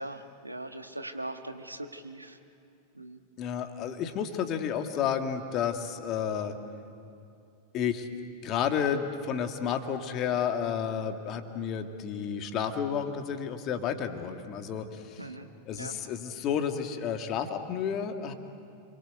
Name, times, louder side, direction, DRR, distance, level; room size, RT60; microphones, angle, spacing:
voice 1, 0.0-2.4 2.9-3.2 15.2-15.5 15.7-16.0, right 1 dB, 85° right, 7 dB, 1.4 m, -40 dB
voice 2, 3.4-6.5 7.7-8.1 8.4-15.2 15.7-18.3, left 8 dB, 35° left, 6 dB, 2.0 m, -31 dB
30.0 x 23.5 x 8.2 m, 2.7 s
figure-of-eight pair, 90°, 0 cm